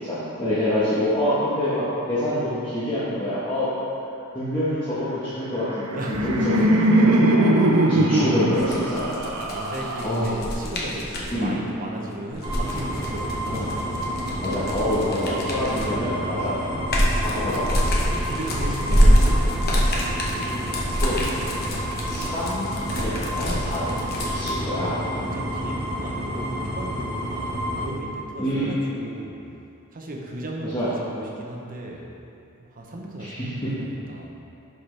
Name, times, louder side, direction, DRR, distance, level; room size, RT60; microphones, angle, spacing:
voice 1, 0.0-3.7 4.3-6.7 7.0-7.5 7.9-9.1 10.0-10.4 11.3-11.6 13.5-13.6 14.4-16.6 16.9-17.8 18.2-18.3 19.1-19.2 21.0-21.2 22.0-25.0 28.4-28.8 30.7-30.9 33.2-33.7, left 1 dB, 20° left, -12 dB, 1.2 m, -26 dB
Laughter, 5.6-10.6, right 1 dB, 80° right, 0.7 m, -21 dB
voice 2, 5.9-6.8 9.5-13.9 18.3-21.0 24.6-29.4 29.9-32.1 32.6-34.3, right 1 dB, 40° right, -1 dB, 0.8 m, -36 dB
sound 1, 8.5-11.3 12.3-16.0 16.5-24.5, equal, 45° left, 1.0 m, -24 dB
sound 2, 12.4-27.9, equal, 20° right, 1.1 m, -30 dB
11.0 x 4.4 x 3.3 m, 2.7 s
head